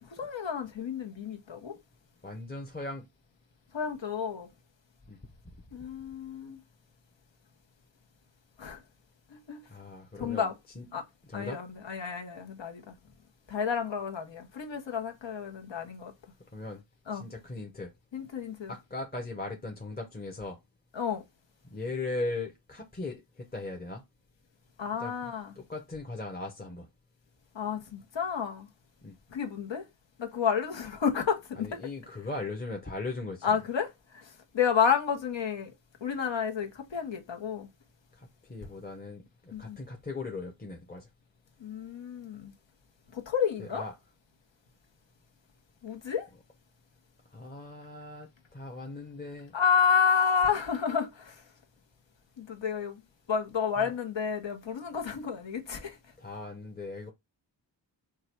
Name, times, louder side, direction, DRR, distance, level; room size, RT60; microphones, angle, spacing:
voice 1, 0.0-1.8 3.7-4.5 5.7-6.6 8.6-8.8 9.3-9.6 10.2-10.5 10.9-11.0 11.3-13.0 13.5-16.1 17.1-17.2 18.1-18.7 20.9-21.2 24.8-25.5 27.5-28.7 29.3-29.9 30.2-31.8 33.4-35.7 36.0-37.7 39.5-39.8 41.6-42.5 43.1-43.8 45.8-46.3 49.5-51.4 52.4-53.0 53.3-56.0, left 7 dB, 75° left, 1.1 m, -30 dB
voice 2, 2.2-3.0 5.1-5.2 9.7-10.5 10.7-10.9 11.3-11.6 16.5-16.8 17.1-17.9 18.7-20.6 21.7-24.0 25.0-25.1 25.6-26.9 29.0-29.1 31.6-33.6 38.2-41.1 43.6-43.9 47.3-49.5 53.8-53.9 56.2-57.1, left 2 dB, 20° left, 0.8 m, -38 dB
4.8 x 2.4 x 4.4 m
wide cardioid pair, 125°, 45 cm